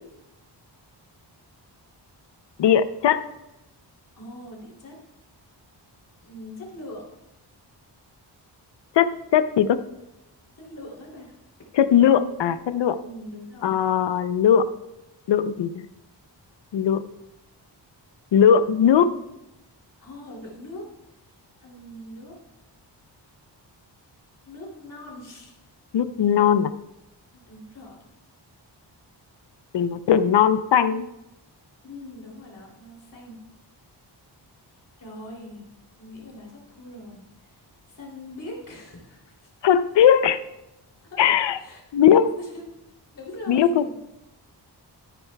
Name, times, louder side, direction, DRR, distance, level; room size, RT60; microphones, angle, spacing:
voice 1, 2.6-3.2 9.0-9.8 11.8-13.0 13.6-14.7 15.3-15.8 16.7-17.0 18.3-19.1 25.9-26.7 29.7-31.0 39.6-40.4 41.2-41.6 41.9-42.3 43.5-43.9, left 8 dB, 75° left, 13 dB, 0.6 m, -19 dB
voice 2, 4.2-5.0 6.2-7.0 10.5-11.3 13.0-13.8 20.0-20.9 21.6-22.4 24.4-25.5 27.3-28.0 31.8-33.4 35.0-35.7 36.0-39.5 41.1-41.3 41.5-41.8 42.1-42.6 43.1-43.9, left 1 dB, 50° left, -3 dB, 2.9 m, -41 dB
13.0 x 9.3 x 2.2 m, 0.92 s
wide cardioid pair, 155°, 43 cm